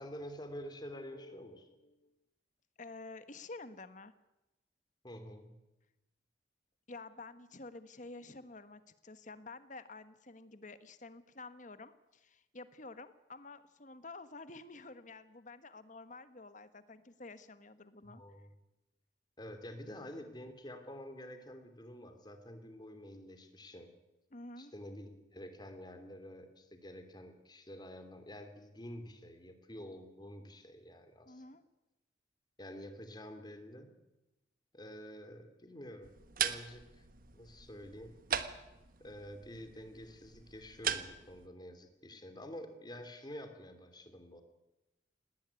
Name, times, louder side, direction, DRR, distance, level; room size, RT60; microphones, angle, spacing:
voice 1, 0.0-1.6 5.0-5.6 18.0-18.5 19.4-23.9 24.6-31.4 32.6-33.9 34.7-36.1 36.4-37.0 37.3-38.2 39.0-44.4, equal, 25° left, 8 dB, 2.9 m, -48 dB
voice 2, 0.9-2.1 2.8-4.1 6.9-18.2 24.3-24.7 31.2-31.6, left 3 dB, 45° left, 12 dB, 1.4 m, -50 dB
sound 1, 36.0-41.5, right 8 dB, 50° right, 1.4 m, -40 dB
19.0 x 18.5 x 9.7 m, 0.96 s
head